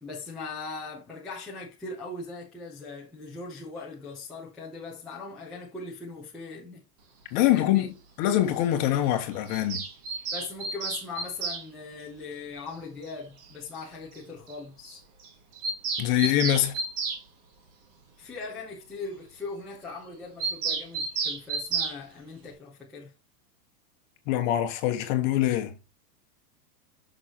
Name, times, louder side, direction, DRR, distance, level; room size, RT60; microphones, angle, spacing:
voice 1, 0.0-6.8 7.5-7.9 10.3-15.0 18.2-23.1, left 3 dB, ahead, 0.5 m, -40 dB
voice 2, 7.3-9.8 16.0-16.8 24.3-25.7, left 12 dB, 30° left, 1.2 m, -24 dB
Bird vocalization bird call bird song, 9.5-11.6 13.1-13.2 13.4-13.5 13.7-13.8 14.1-14.2 14.5-14.6 14.8-15.0 15.2-17.2 20.4-22.0, right 4 dB, 35° right, 1.9 m, -31 dB
6.5 x 6.4 x 2.9 m
supercardioid pair, 180°, 47 cm